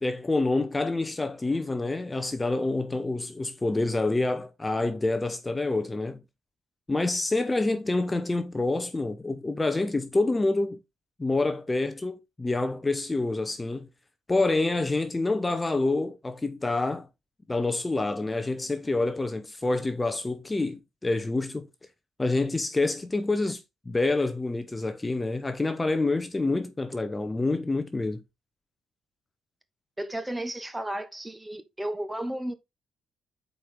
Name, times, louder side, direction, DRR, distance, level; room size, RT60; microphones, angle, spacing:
voice 1, 0.0-6.2 6.9-10.8 11.2-13.9 14.3-17.1 17.5-21.7 22.2-28.2, left 2 dB, 20° left, 0.8 m, -27 dB
voice 2, 30.0-32.5, right 1 dB, 10° right, 1.1 m, -33 dB
8.1 x 4.6 x 3.6 m
cardioid pair, 90°, 0 cm